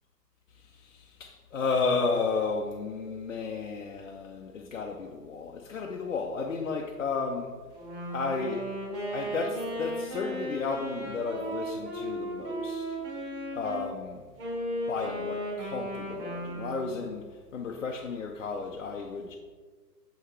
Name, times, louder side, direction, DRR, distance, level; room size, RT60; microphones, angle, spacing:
voice 1, 0.5-7.6 8.1-8.7 9.1-13.0 13.5-14.3 14.9-19.4, left 4 dB, 55° left, 0.6 m, -33 dB
Wind instrument woodwind instrument, 7.7-13.9 14.4-17.0, equal, 10° right, 1.3 m, -35 dB
7.0 x 5.8 x 3.2 m
hypercardioid pair, 165°, 49 cm